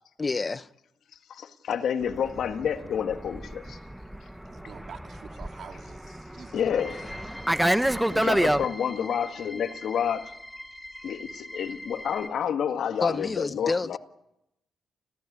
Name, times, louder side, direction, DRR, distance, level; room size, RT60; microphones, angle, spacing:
voice 1, 0.2-0.7 13.0-14.0, left 3 dB, 25° left, 0.9 m, -28 dB
voice 2, 1.3-3.8 6.5-7.3 8.1-10.3 11.0-14.0, left 8 dB, 70° left, 1.8 m, -29 dB
Fixed-wing aircraft airplane, 2.1-8.7, right 1 dB, 5° right, 1.0 m, -28 dB
voice 3, 4.4-6.8, right 6 dB, 60° right, 2.4 m, -47 dB
sound 1, 6.8-12.3, left 1 dB, 10° left, 2.9 m, -43 dB
29.5 x 15.5 x 9.9 m
cardioid pair, 100°, 0 cm